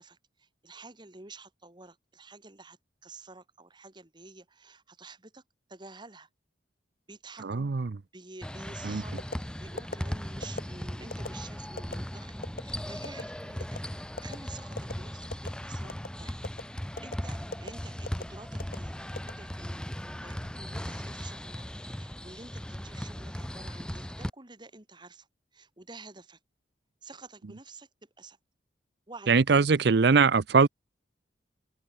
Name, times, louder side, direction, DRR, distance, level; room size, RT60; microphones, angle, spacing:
voice 1, 0.0-5.4 5.7-6.3 7.1-7.7 8.1-13.8 14.2-16.4 17.0-19.8 20.2-21.7 22.0-25.3 25.5-26.4 27.0-28.4 29.1-29.8 30.0-30.2, right 3 dB, 25° right, 1.9 m, -50 dB
voice 2, 7.4-8.0 8.8-9.0 29.3-30.7, right 5 dB, 60° right, 0.6 m, -22 dB
sound 1, 8.4-24.3, equal, 5° left, 0.6 m, -38 dB
sound 2, 9.2-9.4 9.8-10.0 10.4-10.7 11.1-11.3 11.8-12.0 12.4-12.6 13.0-13.2 13.6-13.8 14.2-14.4 14.8-14.9 15.3-15.6 15.9-16.1 16.4-16.6 17.0-17.2 17.5-17.7 18.1-18.2 18.6-18.8 19.2-19.8 20.2-20.5, left 2 dB, 50° left, 1.6 m, -37 dB
head